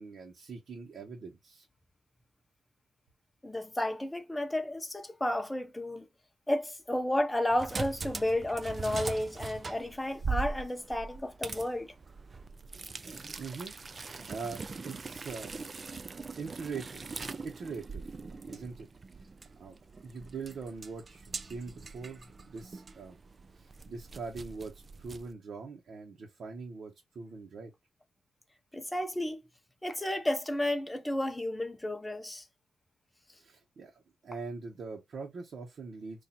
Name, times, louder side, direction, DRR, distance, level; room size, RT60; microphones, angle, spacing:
voice 1, 0.0-1.7 13.1-15.6 16.3-18.2 18.5-18.9 19.2-19.3 19.6-23.2 23.5-27.7 33.4-36.2, right 4 dB, 60° right, 1.1 m, -43 dB
voice 2, 3.4-6.1 6.5-11.9 28.7-29.4 29.8-32.4, left 1 dB, 10° left, 0.8 m, -32 dB
sound 1, 7.5-25.3, right 4 dB, 40° right, 0.4 m, -41 dB
2.7 x 2.6 x 4.2 m
cardioid pair, 75°, 0 cm